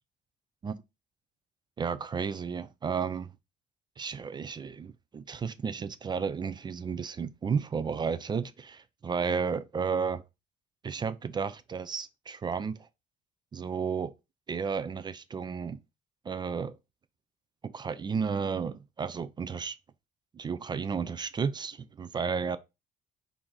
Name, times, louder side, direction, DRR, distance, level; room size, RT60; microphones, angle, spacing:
voice 1, 1.8-3.3 4.0-10.2 10.8-12.9 13.5-14.1 14.5-15.8 16.3-16.8 17.6-19.8 20.3-22.6, right 6 dB, 25° right, 0.4 m, -33 dB
4.6 x 2.7 x 3.6 m
cardioid pair, 110°, 17 cm